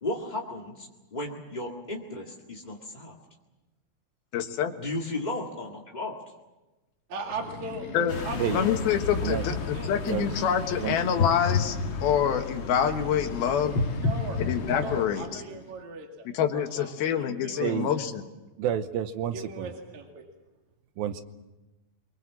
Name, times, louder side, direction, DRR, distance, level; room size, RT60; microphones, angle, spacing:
voice 1, 0.0-3.2 4.8-6.1, left 2 dB, 25° left, -2 dB, 1.0 m, -34 dB
voice 2, 4.3-4.7 7.9-8.2 8.5-13.8 14.4-15.4 16.3-18.3, left 8 dB, 80° left, 5 dB, 3.3 m, -26 dB
voice 3, 7.1-8.0 8.2-8.8 9.2-10.2 10.7-11.1 14.0-14.4 14.8-16.3 16.5-16.9 17.2-18.0 19.3-20.2, right 3 dB, 55° right, 1 dB, 3.4 m, -39 dB
Breathing, 7.2-10.9 12.7-15.8, left 3 dB, 60° left, 3.3 m, -44 dB
sound 1, 8.1-15.0, left 4 dB, 45° left, 1.8 m, -31 dB
voice 4, 10.8-11.4 17.6-17.9 18.6-19.7 21.0-21.2, right 10 dB, 80° right, 10 dB, 2.7 m, -30 dB
24.0 x 22.5 x 7.4 m, 1.1 s
omnidirectional pair, 4.3 m